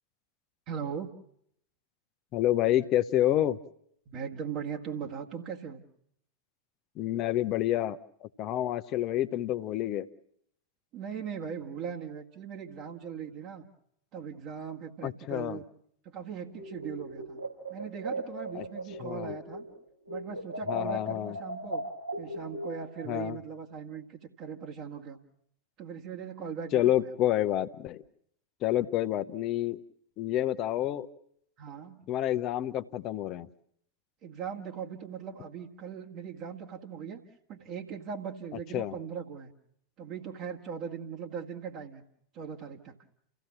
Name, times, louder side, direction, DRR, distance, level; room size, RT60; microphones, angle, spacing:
voice 1, 0.7-1.2 4.1-5.8 10.9-13.7 14.1-15.6 16.0-17.4 17.7-19.7 20.1-21.8 22.2-25.2 25.8-27.2 31.6-32.1 34.2-37.2 37.5-39.5 40.0-42.0 42.3-42.9, right 7 dB, 40° right, 0 dB, 2.0 m, -39 dB
voice 2, 2.3-3.6 7.0-10.1 15.0-15.6 18.6-18.7 19.0-19.3 20.7-21.3 23.1-23.4 26.7-28.0 28.6-29.8 30.2-31.1 32.1-33.5 38.7-38.9, left 13 dB, 35° left, 10 dB, 0.9 m, -28 dB
sound 1, 16.5-19.8 20.1-23.1, equal, 90° right, 5.0 m, -38 dB
30.0 x 16.0 x 7.4 m, 0.70 s
figure-of-eight pair, 90°, 0 cm